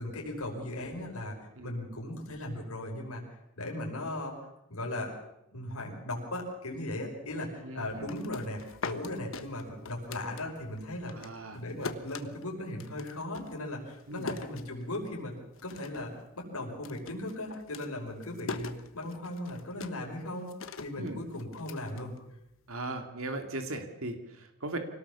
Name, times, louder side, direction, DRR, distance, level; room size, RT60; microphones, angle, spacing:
voice 1, 0.0-1.3 1.6-3.2 3.6-4.3 4.7-5.1 5.5-15.3 15.6-22.2, left 1 dB, 90° left, 0 dB, 5.5 m, -37 dB
voice 2, 7.6-8.1 11.1-11.6 14.1-14.3 21.0-21.2 22.7-24.8, right 2 dB, 75° right, 6 dB, 2.5 m, -38 dB
sound 1, 7.9-10.8 11.1-15.2 15.5-16.2 16.4-22.7, left 4 dB, 65° left, 1.3 m, -43 dB
25.5 x 18.5 x 7.1 m, 0.85 s
head